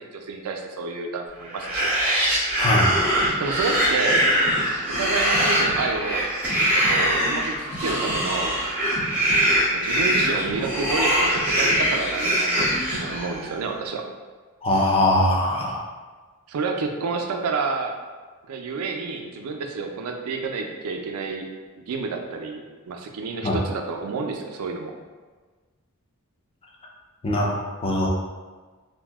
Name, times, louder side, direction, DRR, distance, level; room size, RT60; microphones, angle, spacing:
voice 1, 0.0-1.9 3.4-4.2 4.9-6.3 6.6-8.6 9.7-14.0 16.5-18.0 18.5-21.5 21.9-24.9, right 4 dB, 80° right, 3 dB, 0.4 m, -29 dB
sound 1, 1.5-13.5, equal, 5° right, 0.8 m, -23 dB
voice 2, 2.6-2.9 14.6-15.8 23.4-23.6 27.2-28.1, left 1 dB, 25° left, -2 dB, 0.4 m, -21 dB
sound 2, 2.9-3.7 4.1-4.8 5.3-6.1 6.5-7.3 7.7-8.5 9.0-9.7 10.1-10.9 11.3-12.2 12.6-13.4, left 1 dB, 55° left, 0.8 m, -38 dB
2.6 x 2.0 x 3.3 m, 1.4 s
head